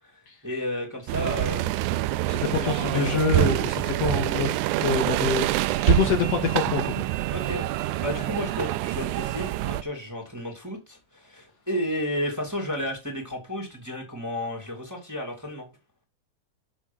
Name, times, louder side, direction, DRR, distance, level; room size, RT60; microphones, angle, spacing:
voice 1, 0.4-1.7 2.2-3.4 7.3-7.7 8.0-15.7, left 1 dB, 5° right, 2.7 m, -32 dB
sound 1, 1.1-9.8, right 16 dB, 90° right, 2.1 m, -26 dB
voice 2, 2.3-4.5 4.8-7.1, left 5 dB, 60° left, 2.3 m, -26 dB
7.2 x 6.2 x 5.5 m
omnidirectional pair, 3.4 m